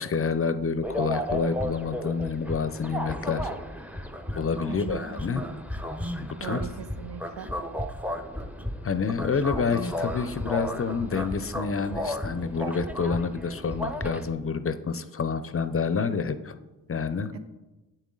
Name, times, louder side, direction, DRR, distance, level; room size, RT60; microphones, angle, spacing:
voice 1, 0.0-3.5 4.4-5.4 6.2-6.6 8.8-16.5 16.9-17.3, left 5 dB, 35° left, 12 dB, 0.6 m, -28 dB
sound 1, 0.8-14.3, equal, 5° right, 0.7 m, -34 dB
voice 2, 4.7-5.0 6.4-7.5 17.3-17.4, right 8 dB, 75° right, 8 dB, 1.0 m, -38 dB
8.2 x 7.2 x 3.8 m, 1.1 s
supercardioid pair, 60°, 42 cm